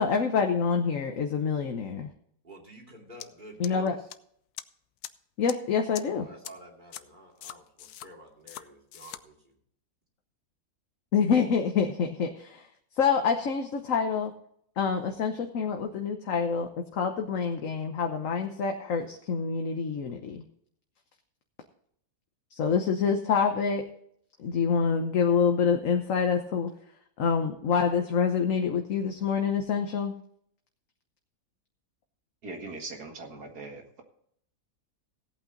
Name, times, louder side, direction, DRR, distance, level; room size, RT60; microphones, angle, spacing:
voice 1, 0.0-2.1 3.6-3.9 5.4-6.3 11.1-12.7 13.0-14.3 14.8-20.4 22.5-23.8 24.4-26.7 27.2-30.1, left 6 dB, 60° left, 4 dB, 1.3 m, -26 dB
voice 2, 2.4-4.1 6.1-9.5, right 1 dB, 30° right, -1 dB, 2.8 m, -50 dB
sound 1, 3.2-3.3 3.6-4.1 4.6-4.7 5.0-5.1 5.5-5.6 5.9-6.0 6.4-6.5 6.9-7.0 7.4-8.1 8.5-8.6 8.9-9.2, left 12 dB, 80° left, 1.2 m, -40 dB
voice 3, 32.4-34.0, right 3 dB, 85° right, 3 dB, 2.4 m, -41 dB
16.5 x 8.6 x 3.9 m, 0.68 s
omnidirectional pair, 1.6 m